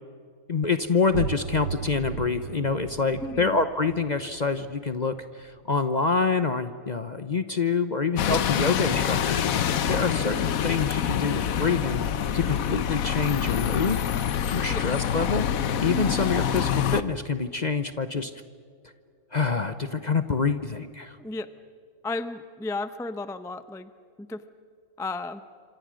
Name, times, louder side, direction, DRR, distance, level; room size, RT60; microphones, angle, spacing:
voice 1, 0.5-12.0 12.3-14.0 14.5-15.5 15.8-18.3 19.3-21.2, left 4 dB, 35° left, 11 dB, 0.8 m, -26 dB
sound 1, 1.1-6.6, right 7 dB, 65° right, 1.2 m, -37 dB
voice 2, 3.2-3.5 14.7-14.8 21.2-21.5 22.0-23.9 24.2-24.4 25.0-25.4, left 2 dB, 5° left, 12 dB, 0.6 m, -33 dB
Bus, 8.2-17.0, left 9 dB, 70° left, 1.3 m, -26 dB
28.0 x 26.0 x 6.4 m, 2.2 s
omnidirectional pair, 1.6 m